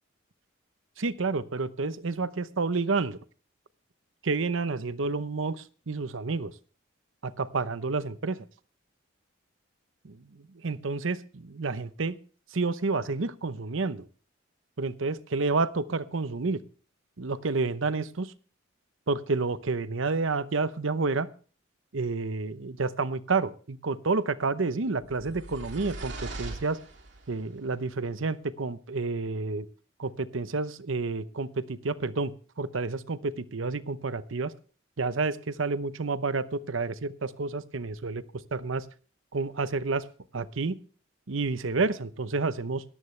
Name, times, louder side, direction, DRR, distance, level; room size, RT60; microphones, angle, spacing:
voice 1, 1.0-3.2 4.2-6.5 7.2-8.4 10.0-12.2 12.5-14.1 14.8-16.6 17.2-18.3 19.1-21.3 21.9-26.8 27.3-29.7 30.0-32.3 32.6-34.5 35.0-38.2 38.5-38.8 39.3-40.1 40.3-40.8 41.3-42.8, right 3 dB, 75° right, 14 dB, 0.8 m, -29 dB
sound 1, 25.0-27.4, right 2 dB, 55° right, 3.2 m, -40 dB
17.5 x 14.0 x 3.3 m, 0.41 s
head